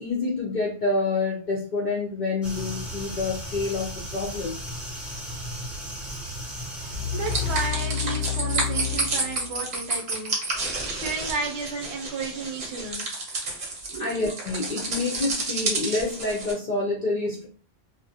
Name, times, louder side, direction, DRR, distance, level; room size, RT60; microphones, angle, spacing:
voice 1, 0.0-4.6 14.0-17.5, left 3 dB, 55° left, -2 dB, 0.5 m, -27 dB
sound 1, 2.4-7.7, right 1 dB, ahead, 0.5 m, -35 dB
voice 2, 6.8-13.1 13.9-14.1, right 4 dB, 75° right, 3 dB, 0.8 m, -33 dB
sound 2, 6.9-10.0, left 10 dB, 80° left, 0.9 m, -31 dB
sound 3, 7.3-16.5, right 3 dB, 45° right, 0.7 m, -30 dB
2.4 x 2.0 x 2.6 m, 0.40 s
omnidirectional pair, 1.1 m